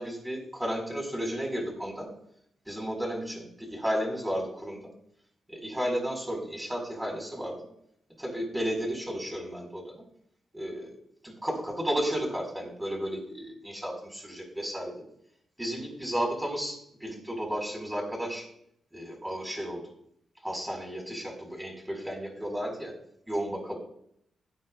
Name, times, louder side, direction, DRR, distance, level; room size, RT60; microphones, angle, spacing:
voice 1, 0.0-2.1 2.6-4.9 5.5-7.6 8.2-10.0 10.5-10.9 11.2-15.0 15.6-18.5 18.9-19.8 20.4-22.9 23.3-23.8, equal, 10° right, 0 dB, 5.0 m, -33 dB
18.0 x 9.1 x 2.4 m, 0.73 s
cardioid pair, 75°, 0 cm